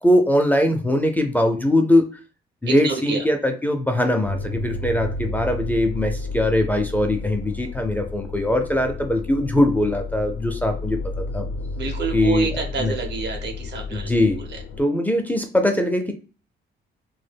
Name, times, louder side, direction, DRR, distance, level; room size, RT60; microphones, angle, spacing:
voice 1, 0.0-2.1 2.6-11.0 11.3-11.5 12.1-12.5 12.8-12.9 13.9-14.4 14.8-16.1, left 1 dB, 10° left, 3 dB, 0.4 m, -21 dB
voice 2, 2.7-3.2 11.7-14.1 14.5-14.6, right 5 dB, 60° right, 3 dB, 0.9 m, -28 dB
sound 1, 4.2-14.8, left 3 dB, 75° left, 0.4 m, -32 dB
2.2 x 2.1 x 3.3 m, 0.35 s
cardioid pair, 90°, 20 cm